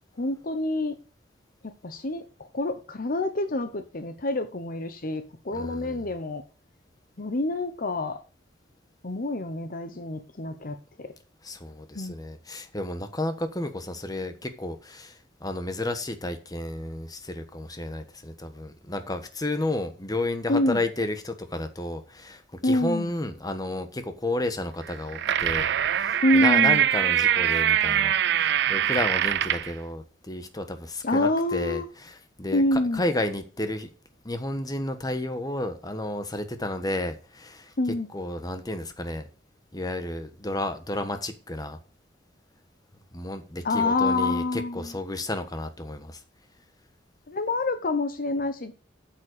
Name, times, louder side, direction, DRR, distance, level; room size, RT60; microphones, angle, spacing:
voice 1, 0.2-1.0 1.6-6.4 7.2-8.2 9.0-11.1 11.9-12.2 20.5-20.8 22.6-23.1 26.2-26.8 31.0-31.9 32.5-33.0 37.8-38.1 43.6-45.0 47.3-48.7, left 2 dB, 50° left, 0.9 m, -27 dB
voice 2, 5.5-6.0 11.4-25.7 25.9-33.9 34.2-37.7 38.1-39.3 39.7-41.8 43.1-46.2, left 1 dB, 20° left, 1.3 m, -32 dB
sound 1, 24.9-29.7, right 10 dB, 65° right, 0.5 m, -23 dB
8.5 x 7.5 x 6.7 m
head